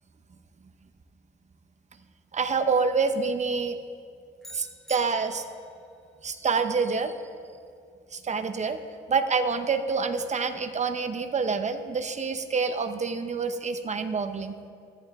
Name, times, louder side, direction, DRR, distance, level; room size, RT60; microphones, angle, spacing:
voice 1, 2.3-3.8 4.5-5.4 6.2-7.1 8.1-8.8 9.1-14.5, right 5 dB, 35° right, 8 dB, 0.8 m, -27 dB
sound 1, 4.4-5.8, equal, ahead, 0.7 m, -47 dB
14.0 x 14.0 x 3.6 m, 2.4 s
cardioid pair, 90°, 20 cm